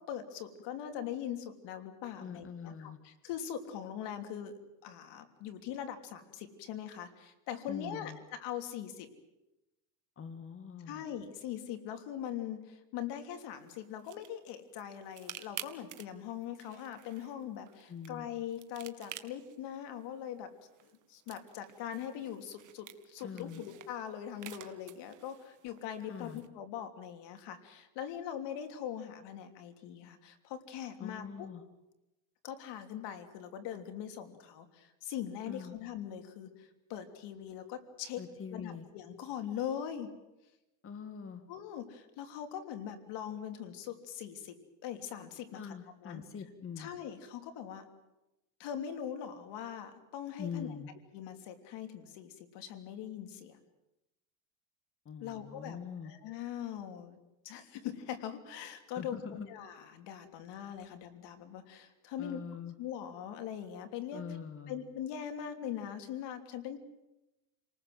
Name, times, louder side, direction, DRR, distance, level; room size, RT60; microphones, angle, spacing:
voice 1, 0.0-4.5 4.8-9.1 10.9-20.5 20.8-31.5 32.4-38.2 38.5-40.1 41.5-44.5 44.8-45.7 46.0-46.2 46.8-47.9 48.6-50.7 51.1-53.6 55.2-55.8 56.0-57.2 57.4-62.4 62.8-64.2 64.7-66.8, left 9 dB, 70° left, 7 dB, 3.2 m, -41 dB
voice 2, 2.2-3.0 7.7-8.2 10.2-11.0 17.9-18.3 23.2-23.7 26.0-26.4 31.0-31.6 35.5-35.8 38.2-38.9 40.8-41.4 45.5-46.9 50.4-50.9 55.1-56.1 59.0-59.5 62.2-62.7 64.1-64.8, left 6 dB, 30° left, 8 dB, 2.0 m, -43 dB
sound 1, 13.5-26.5, right 12 dB, 45° right, 1.8 m, -52 dB
29.5 x 19.5 x 7.9 m, 0.98 s
cardioid pair, 125°, 44 cm